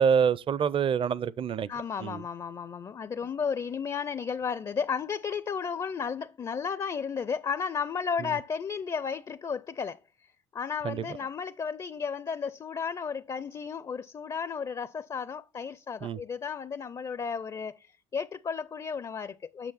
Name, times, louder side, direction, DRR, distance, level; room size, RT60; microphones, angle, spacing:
voice 1, 0.0-1.7 2.0-2.2 10.8-11.0 16.0-16.2, right 7 dB, 35° right, 0.5 m, -26 dB
voice 2, 1.7-10.0 10.5-19.7, left 6 dB, 25° left, 0.4 m, -33 dB
8.9 x 6.3 x 4.1 m
supercardioid pair, 85°, 15 cm